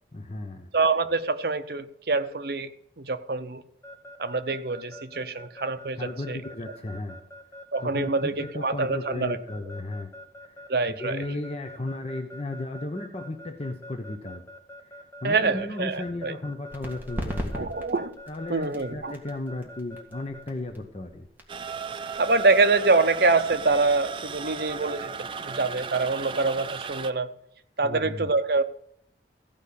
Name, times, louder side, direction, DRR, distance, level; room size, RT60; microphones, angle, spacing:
voice 1, 0.1-0.7 5.9-7.2 7.8-10.1 10.4-14.5 14.8-17.8 18.3-21.3 27.8-28.3, left 2 dB, 35° left, 4 dB, 0.9 m, -35 dB
voice 2, 0.7-2.7 3.0-3.6 4.2-6.4 7.7-9.4 10.7-11.2 15.2-16.4 17.5-18.2 18.5-19.1 22.2-27.3 27.8-28.6, right 3 dB, 60° right, 10 dB, 0.8 m, -25 dB
Keyboard (musical) / Alarm, 3.8-20.4, equal, 15° left, 1.2 m, -44 dB
sound 1, 16.7-24.0, equal, 10° right, 1.8 m, -40 dB
sound 2, 21.5-27.1, right 5 dB, 30° right, 0.4 m, -36 dB
15.5 x 5.3 x 8.5 m, 0.74 s
head